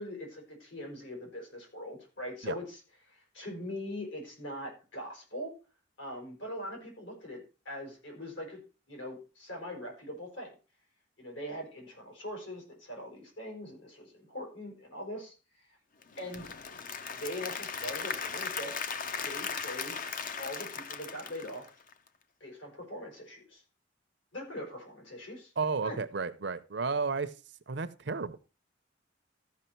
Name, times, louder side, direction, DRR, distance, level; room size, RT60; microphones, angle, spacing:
voice 1, 0.0-2.8 3.1-5.5 6.0-8.6 8.9-10.5 11.2-15.7 16.2-16.6 17.1-18.7 19.2-20.1 20.4-21.7 22.4-23.6 24.3-25.5 25.8-26.0, left 1 dB, 80° left, 5.4 m, -42 dB
Applause / Crowd, 16.0-22.1, left 6 dB, 45° left, 0.7 m, -38 dB
voice 2, 25.6-27.3 27.7-28.4, right 4 dB, 65° right, 0.7 m, -32 dB
14.0 x 5.9 x 4.5 m
head